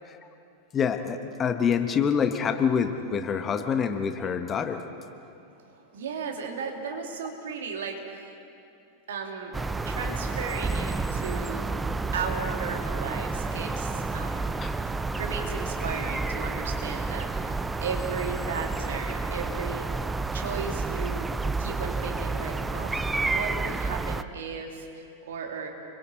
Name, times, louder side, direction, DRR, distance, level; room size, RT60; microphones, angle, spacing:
voice 1, 0.7-4.8 14.5-14.7, left 7 dB, 25° left, 7 dB, 1.2 m, -26 dB
voice 2, 5.9-8.3 9.1-9.5 9.8-11.7 12.1-14.7 15.2-17.5 17.8-19.9 20.3-21.3 21.6-25.7, right 5 dB, 60° right, 2 dB, 2.8 m, -35 dB
sound 1, 9.5-24.2, right 3 dB, 10° right, 0.6 m, -30 dB
30.0 x 22.5 x 4.3 m, 2.6 s
figure-of-eight pair, 90°, 0 cm